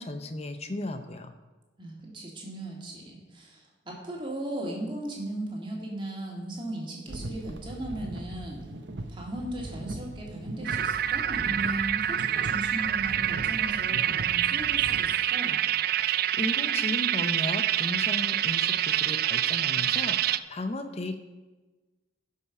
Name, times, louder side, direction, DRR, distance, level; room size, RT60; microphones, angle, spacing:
voice 1, 0.0-1.3 16.1-21.2, left 1 dB, 35° left, 8 dB, 0.7 m, -35 dB
voice 2, 1.8-8.6 9.1-15.6, right 1 dB, 25° right, -2 dB, 2.3 m, -37 dB
sound 1, 7.1-15.0, right 1 dB, 70° right, 0.8 m, -40 dB
sound 2, 10.6-20.4, right 11 dB, 50° right, 0.3 m, -26 dB
11.5 x 5.6 x 6.0 m, 1.2 s
head